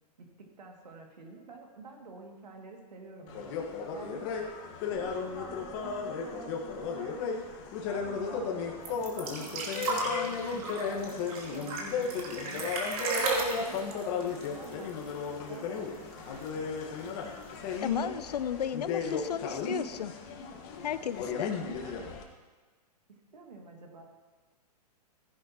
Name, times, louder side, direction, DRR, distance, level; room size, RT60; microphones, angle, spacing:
voice 1, 0.2-4.2 4.8-7.5 7.8-12.7 13.1-16.7 21.8-22.1 23.3-24.0, right 3 dB, 85° right, 1 dB, 2.4 m, -48 dB
sound 1, 3.3-22.2, left 5 dB, 40° left, 1.5 m, -35 dB
sound 2, 8.8-15.3 15.5-15.6 15.9-16.7 17.5-17.6, right 3 dB, 60° right, 2.9 m, -34 dB
voice 2, 17.8-20.1 20.8-21.6, left 9 dB, 75° left, 14 dB, 0.6 m, -34 dB
15.5 x 10.5 x 3.0 m, 1.3 s
hypercardioid pair, 125°, 21 cm